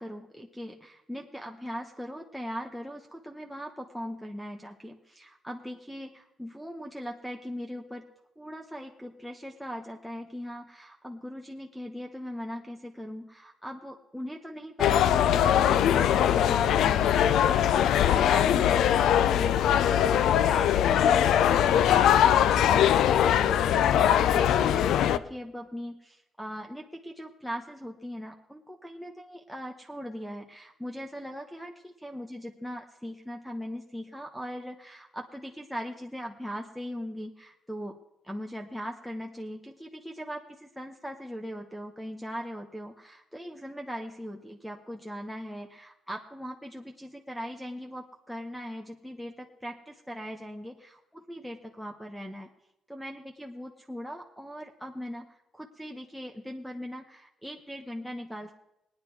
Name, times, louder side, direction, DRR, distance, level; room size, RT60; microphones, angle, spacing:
voice 1, 0.0-8.1 8.4-38.0 38.2-52.5 52.9-58.6, equal, ahead, 4 dB, 1.0 m, -40 dB
sound 1, 14.8-25.2, left 10 dB, 80° left, 0.4 m, -22 dB
18.5 x 9.7 x 4.6 m, 0.89 s
cardioid pair, 90°, 0 cm